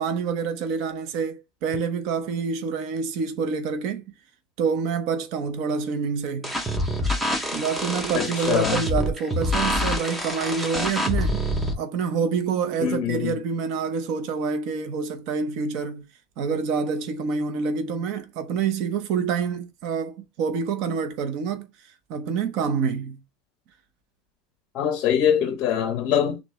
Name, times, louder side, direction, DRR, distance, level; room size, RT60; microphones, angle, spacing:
voice 1, 0.0-4.0 4.6-6.5 7.5-11.4 11.8-16.0 16.4-21.7 22.1-23.2, right 5 dB, 45° right, 0.7 m, -27 dB
sound 1, 6.4-11.7, left 1 dB, 5° right, 0.6 m, -26 dB
voice 2, 8.1-8.8 12.8-13.4 24.7-26.4, left 9 dB, 35° left, 0.6 m, -23 dB
6.3 x 2.7 x 3.1 m
supercardioid pair, 175°, 0 cm